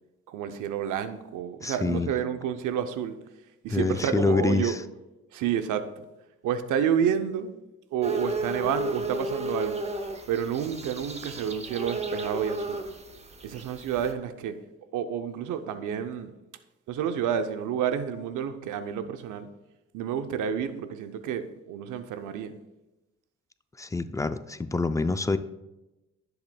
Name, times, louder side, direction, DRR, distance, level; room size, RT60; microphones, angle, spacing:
voice 1, 0.3-3.2 3.6-4.9 5.3-6.0 6.4-7.5 7.9-9.8 10.3-12.8 13.4-14.6 14.9-16.3 16.9-19.5 19.9-22.5, right 8 dB, 80° right, 9 dB, 0.7 m, -29 dB
voice 2, 1.6-2.1 3.7-4.7 23.8-25.4, left 3 dB, 10° left, 12 dB, 0.3 m, -26 dB
sound 1, 8.0-14.1, right 2 dB, 20° right, 0.7 m, -33 dB
10.5 x 7.9 x 2.3 m, 1.0 s
cardioid pair, 90°, 30 cm